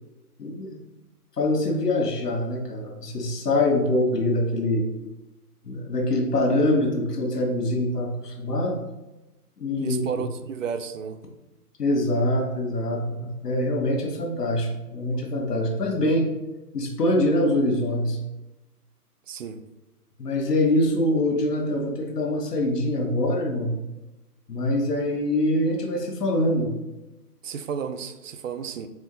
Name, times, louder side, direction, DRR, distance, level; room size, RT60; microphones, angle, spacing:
voice 1, 0.4-0.8 1.4-4.8 5.6-8.8 9.6-10.2 11.8-16.3 16.7-18.2 20.2-23.7 24.5-26.7, left 1 dB, 80° left, 1 dB, 1.2 m, -24 dB
voice 2, 9.8-11.2 19.3-19.6 27.4-28.9, right 7 dB, 55° right, 10 dB, 0.5 m, -32 dB
4.4 x 2.7 x 3.7 m, 1.0 s
hypercardioid pair, 150°, 46 cm